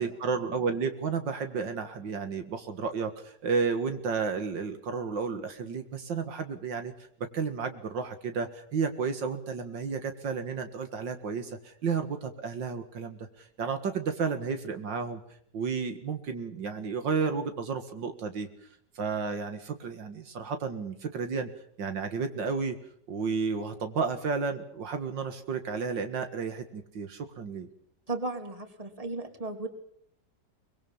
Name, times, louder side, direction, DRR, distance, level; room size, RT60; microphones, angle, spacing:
voice 1, 0.0-6.9 7.3-15.2 15.5-18.5 19.0-21.5 21.8-22.8 23.1-27.7, right 5 dB, 80° right, 8 dB, 2.4 m, -32 dB
voice 2, 28.1-29.7, right 3 dB, 20° right, 6 dB, 2.9 m, -35 dB
24.0 x 22.0 x 7.2 m, 0.68 s
omnidirectional pair, 2.0 m